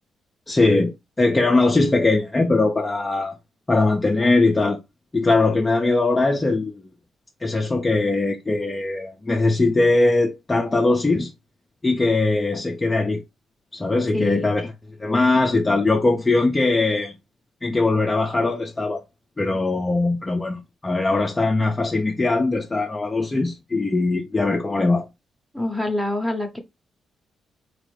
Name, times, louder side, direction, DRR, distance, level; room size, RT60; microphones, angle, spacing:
voice 1, 0.5-0.9 1.2-3.3 3.7-4.8 5.1-6.8 7.4-11.3 11.8-13.2 13.7-14.7 15.0-17.1 17.6-19.0 19.4-25.1, left 2 dB, 15° left, 0.4 m, -20 dB
voice 2, 14.1-14.5 25.5-26.6, left 2 dB, 5° right, 0.7 m, -26 dB
4.2 x 2.5 x 3.1 m
cardioid pair, 175°, 0 cm